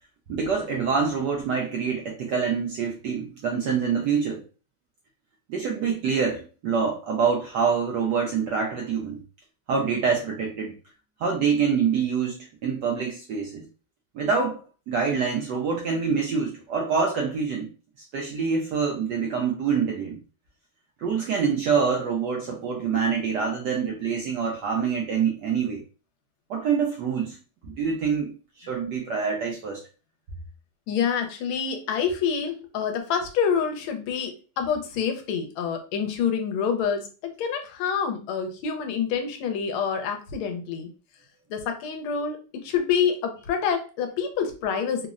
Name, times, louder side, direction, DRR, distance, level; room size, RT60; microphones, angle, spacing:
voice 1, 0.3-4.4 5.5-9.2 9.7-10.7 11.2-13.7 14.1-14.6 14.9-17.7 18.1-20.2 21.0-25.8 26.5-27.4 27.6-28.3 28.6-29.8, right 6 dB, 75° right, 1.0 m, -26 dB
voice 2, 30.9-40.9 41.5-45.1, left 7 dB, 80° left, 1.4 m, -27 dB
3.8 x 2.0 x 2.4 m
omnidirectional pair, 2.3 m